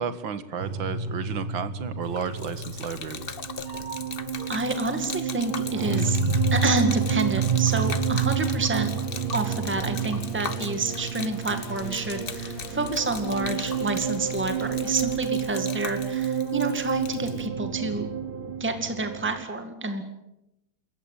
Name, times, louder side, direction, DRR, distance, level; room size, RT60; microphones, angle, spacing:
voice 1, 0.0-3.2, right 6 dB, 65° right, 12 dB, 2.2 m, -32 dB
sound 1, 0.6-19.4, right 6 dB, 35° right, 1.0 m, -29 dB
Gurgling / Liquid, 2.0-17.5, left 5 dB, 35° left, 0.9 m, -40 dB
voice 2, 4.5-6.2 6.5-8.9 9.3-18.1 18.6-20.0, right 3 dB, 5° right, 7 dB, 2.0 m, -28 dB
sound 2, 6.3-15.3, left 2 dB, 60° left, 3.9 m, -47 dB
27.5 x 15.0 x 9.1 m, 0.87 s
omnidirectional pair, 2.3 m